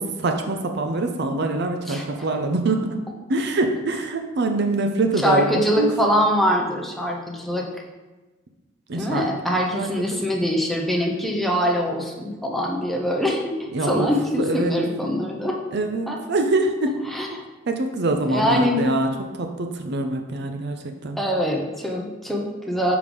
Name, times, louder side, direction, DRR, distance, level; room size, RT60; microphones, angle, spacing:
voice 1, 0.0-3.0 3.3-5.9 8.9-9.3 9.7-10.2 13.7-14.8 15.7-16.9 17.7-21.2, right 2 dB, 60° right, 5 dB, 0.6 m, -24 dB
voice 2, 1.9-2.3 5.2-7.7 8.9-13.5 13.8-15.6 16.1-16.2 17.1-17.4 18.3-18.8 21.2-23.0, equal, ahead, -1 dB, 0.8 m, -23 dB
5.4 x 4.9 x 5.3 m, 1.2 s
head